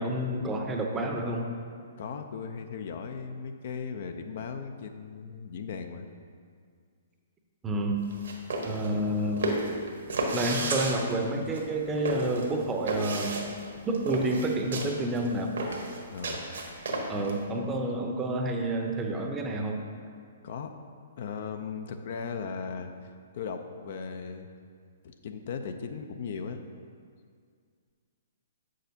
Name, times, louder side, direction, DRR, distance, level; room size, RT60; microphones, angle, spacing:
voice 1, 0.0-1.5 7.6-8.0 8.6-9.5 10.3-13.4 13.8-15.6 17.1-19.8, right 1 dB, 15° right, 2 dB, 0.7 m, -29 dB
voice 2, 2.0-6.1 16.1-16.4 20.4-20.8 21.2-22.9 23.3-24.5 25.0-26.6, left 6 dB, 55° left, 7 dB, 0.5 m, -37 dB
sound 1, 8.0-17.4, right 2 dB, 70° right, 1.2 m, -33 dB
7.7 x 6.4 x 2.7 m, 2.1 s
figure-of-eight pair, 125°, 0 cm